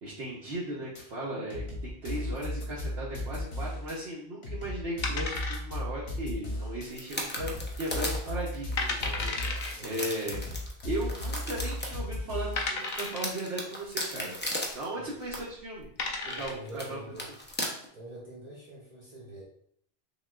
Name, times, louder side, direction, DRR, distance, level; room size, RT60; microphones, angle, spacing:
voice 1, 0.0-10.4 10.8-14.4 14.7-15.9 16.2-17.0, right 1 dB, 90° right, -6 dB, 1.0 m, -37 dB
sound 1, 1.0-1.1 1.5-4.0 4.4-6.9 7.4-9.8 10.3-12.7, left 1 dB, 90° left, 1.2 m, -35 dB
sound 2, 5.0-6.0 6.3-6.4 7.0-7.4 7.7-7.8 8.4-8.5 8.8-9.7 10.8-10.9 11.6-11.7 12.6-13.4 15.2-15.4 15.8-16.7, left 3 dB, 55° left, 0.6 m, -33 dB
sound 3, 6.9-12.0 12.5-14.9 15.2-15.3 16.3-16.4 16.7-16.9 17.1-17.9, left 1 dB, 20° left, 0.3 m, -37 dB
voice 2, 9.6-10.1 15.0-15.1 16.3-17.3 17.9-19.4, right 1 dB, 45° right, -5 dB, 0.8 m, -45 dB
5.8 x 2.3 x 2.3 m, 0.66 s
omnidirectional pair, 1.1 m